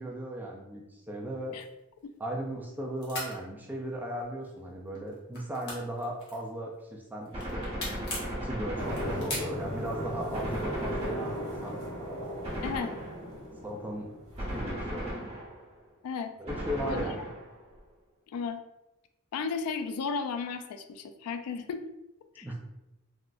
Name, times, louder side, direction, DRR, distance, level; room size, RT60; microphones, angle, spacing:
voice 1, 0.0-1.6 2.2-7.7 8.3-11.8 13.6-14.1 14.5-15.1 16.4-17.3 22.4-22.6, right 1 dB, 10° right, -1 dB, 0.3 m, -37 dB
sound 1, 1.5-2.7 3.0-3.3 4.1-4.6 4.9-6.8 7.2-8.3 8.9-10.0, left 1 dB, 50° left, 1.0 m, -39 dB
Gunshot gunfire, 7.3-9.8 10.3-11.7 12.4-13.5 14.4-15.8 16.5-17.7, equal, 25° right, 1.0 m, -37 dB
sound 2, 8.8-14.6, equal, 90° right, 1.0 m, -37 dB
voice 2, 19.3-21.9 22.4-22.6, left 5 dB, 85° left, 12 dB, 0.3 m, -34 dB
3.5 x 2.0 x 2.4 m, 0.93 s
head